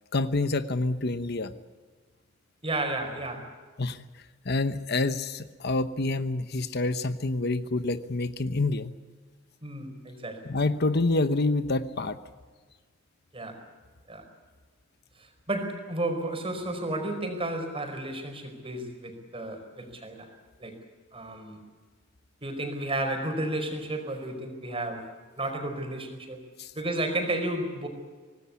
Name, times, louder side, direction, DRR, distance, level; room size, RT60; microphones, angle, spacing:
voice 1, 0.1-1.5 3.8-4.0 4.4-8.9 10.5-12.2 26.6-26.7, left 2 dB, 55° left, 11 dB, 1.0 m, -27 dB
voice 2, 2.6-3.6 9.6-10.5 13.3-13.7 14.1-14.2 15.2-20.3 20.6-20.7 21.1-21.6 22.4-26.4 26.7-27.9, right 1 dB, 30° right, 5 dB, 4.9 m, -32 dB
25.5 x 19.0 x 8.4 m, 1.5 s
head